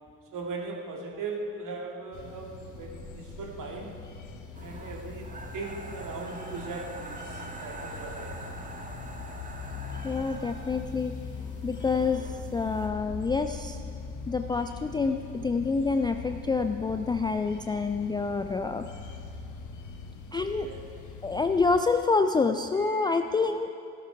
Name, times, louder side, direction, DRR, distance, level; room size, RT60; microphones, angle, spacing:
voice 1, 0.3-3.9 4.6-5.3 5.5-8.6 20.6-20.8 22.8-23.1, right 3 dB, 50° right, 0 dB, 2.5 m, -39 dB
sound 1, 2.1-21.8, left 4 dB, 45° left, 1.5 m, -41 dB
sound 2, 4.5-12.9, right 2 dB, 20° right, 1.7 m, -44 dB
voice 2, 10.0-11.1 11.6-13.8 14.3-18.9 20.3-20.7 21.2-23.7, left 4 dB, 10° left, 7 dB, 0.4 m, -27 dB
17.0 x 12.0 x 4.7 m, 2.6 s
figure-of-eight pair, 50°, 42 cm